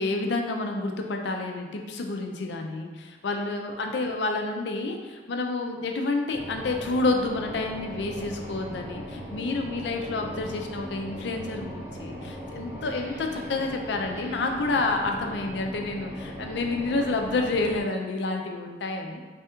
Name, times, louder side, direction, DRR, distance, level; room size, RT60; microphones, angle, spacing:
voice 1, 0.0-19.2, left 3 dB, 75° left, 3 dB, 0.5 m, -29 dB
sound 1, 6.3-17.8, equal, 10° right, 0.6 m, -39 dB
3.4 x 2.4 x 4.3 m, 1.3 s
head